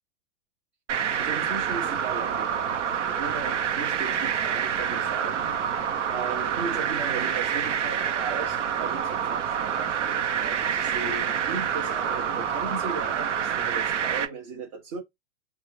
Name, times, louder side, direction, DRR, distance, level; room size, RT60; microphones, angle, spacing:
sound 1, 0.9-14.2, right 8 dB, 85° right, 0.9 m, -27 dB
voice 1, 1.2-5.7 6.1-15.0, right 4 dB, 30° right, 0.7 m, -37 dB
3.9 x 2.4 x 3.0 m
supercardioid pair, 170°, 35 cm